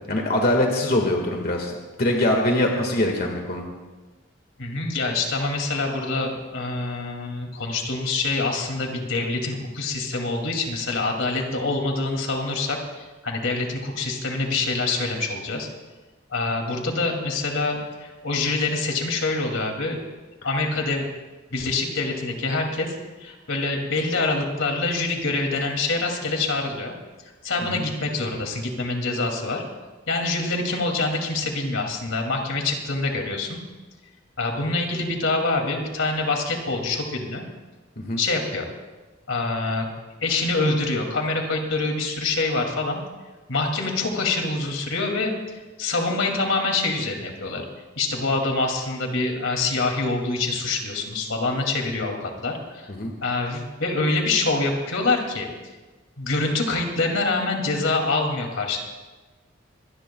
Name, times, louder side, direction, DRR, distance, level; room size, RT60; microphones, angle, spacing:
voice 1, 0.1-1.7 2.0-3.6 27.7-27.8 38.0-38.2 52.9-53.1, left 1 dB, 50° left, 1 dB, 1.8 m, -23 dB
voice 2, 4.6-15.7 16.3-20.0 20.4-21.1 21.5-26.9 27.4-29.6 30.1-33.6 34.4-37.4 38.2-38.7 39.3-39.9 40.2-43.0 43.5-47.6 48.0-52.9 53.2-55.5 56.2-58.8, left 3 dB, 85° left, 2 dB, 2.6 m, -25 dB
25.5 x 18.5 x 2.3 m, 1.2 s
head